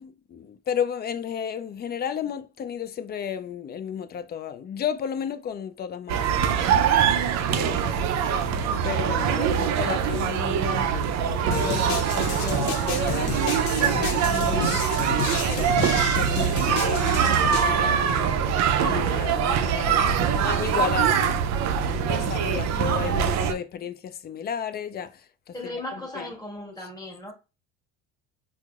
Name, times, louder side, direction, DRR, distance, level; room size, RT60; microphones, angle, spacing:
voice 1, 0.0-6.7 7.5-8.0 8.8-10.9 11.2-13.4 13.7-14.9 15.3-18.4 18.8-21.4 21.8-26.3 26.8-26.9, left 8 dB, 30° left, 0.4 m, -33 dB
sound 1, 6.1-23.5, right 8 dB, 50° right, 0.5 m, -23 dB
sound 2, 11.5-17.7, left 8 dB, 75° left, 0.6 m, -31 dB
voice 2, 19.8-20.5 21.9-22.2 25.5-27.3, left 1 dB, 10° left, 1.4 m, -37 dB
4.4 x 2.0 x 2.3 m
supercardioid pair, 85°, 34 cm